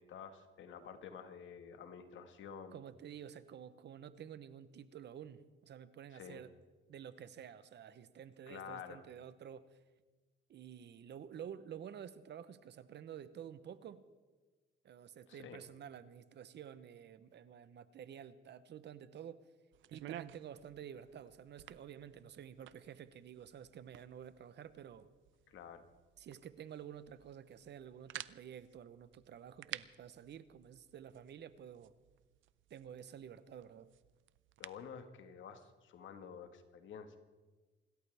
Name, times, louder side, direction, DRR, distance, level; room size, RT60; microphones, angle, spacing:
voice 1, 0.0-2.8 6.1-6.4 8.5-9.0 15.3-15.6 25.5-25.8 34.6-37.2, left 7 dB, 75° left, 8 dB, 1.7 m, -50 dB
voice 2, 2.7-6.5 6.9-9.8 10.5-14.0 14.8-19.4 19.9-25.1 26.2-31.9 32.7-33.9, right 9 dB, 60° right, 14 dB, 0.9 m, -51 dB
sound 1, 19.7-34.9, right 13 dB, 75° right, 0.5 m, -54 dB
28.5 x 13.0 x 3.5 m, 1.3 s
cardioid pair, 90°, 20 cm